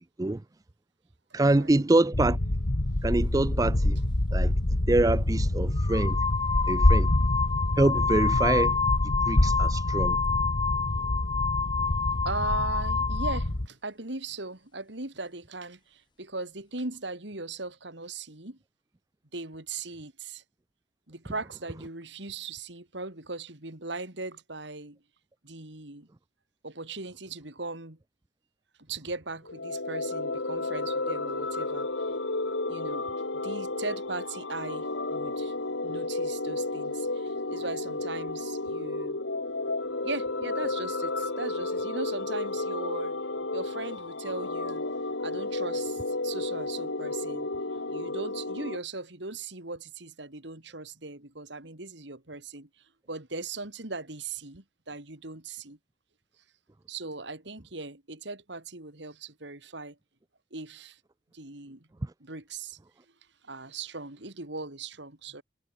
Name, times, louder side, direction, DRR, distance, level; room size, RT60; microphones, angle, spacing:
voice 1, 1.3-2.4 3.0-4.0 4.3-4.5 4.9-6.2 6.7-7.1 7.8-8.8 9.3-10.2 62.0-62.1, right 2 dB, 20° right, 0.4 m, -25 dB
sound 1, 2.1-13.7, left 1 dB, 60° left, 1.7 m, -26 dB
sound 2, 4.8-5.0 5.8-13.5, left 5 dB, 25° left, 0.8 m, -29 dB
voice 2, 12.2-18.6 19.3-20.4 21.1-25.0 25.4-26.1 26.6-28.0 28.8-31.9 32.7-33.1 33.4-35.5 35.8-39.2 40.0-43.2 43.5-44.9 45.2-52.7 53.1-55.8 56.9-60.0 60.5-61.0 61.3-61.9 62.2-62.8 63.4-65.4, right 3 dB, 70° right, 3.3 m, -39 dB
sound 3, 29.5-48.8, left 2 dB, 80° left, 2.7 m, -32 dB
head